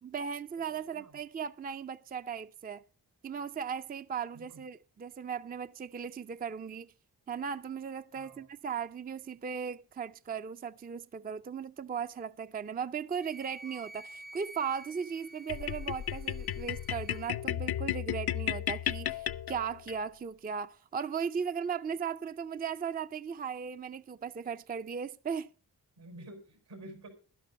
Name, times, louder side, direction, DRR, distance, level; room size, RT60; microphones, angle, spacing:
voice 1, 0.0-2.8 3.2-6.9 7.3-25.5, right 6 dB, 25° right, 0.4 m, -37 dB
voice 2, 0.7-1.2 4.3-4.6 8.1-8.5 26.0-27.1, right 1 dB, 85° right, 4.8 m, -50 dB
Wind instrument woodwind instrument, 13.2-17.3, right 1 dB, 50° right, 1.1 m, -50 dB
sound 1, 15.5-20.0, left 10 dB, 70° left, 0.5 m, -34 dB
11.5 x 11.0 x 4.0 m
cardioid pair, 45°, 40 cm